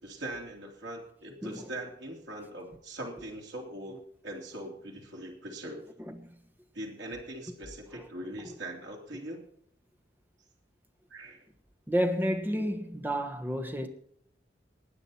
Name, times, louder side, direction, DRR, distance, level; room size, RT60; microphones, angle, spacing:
voice 1, 0.0-5.9 6.7-9.4 11.1-11.4, right 1 dB, 80° right, 3.3 m, -41 dB
voice 2, 11.9-13.9, equal, 10° right, 1.2 m, -30 dB
19.5 x 9.0 x 4.3 m
head